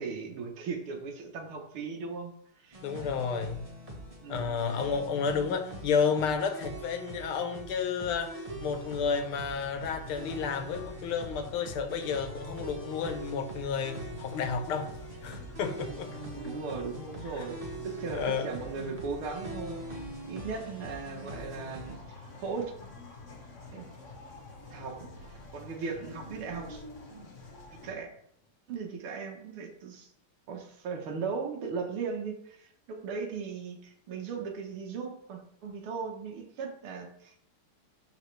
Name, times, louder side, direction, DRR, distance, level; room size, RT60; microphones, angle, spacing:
voice 1, 0.0-2.3 2.6-2.8 4.2-4.7 16.1-22.7 23.7-23.9 24.7-26.8 27.8-28.1 28.7-30.1 30.5-37.4, right 5 dB, 80° right, 2 dB, 2.1 m, -38 dB
sound 1, 2.7-22.0, right 1 dB, 25° right, 0.9 m, -43 dB
voice 2, 2.8-3.6 4.3-14.9 15.2-16.1 17.4-17.5 18.1-18.5, left 6 dB, 80° left, 7 dB, 1.8 m, -31 dB
sound 2, 8.6-27.9, left 2 dB, 40° left, 1.6 m, -47 dB
12.0 x 4.3 x 3.3 m, 0.71 s
omnidirectional pair, 2.4 m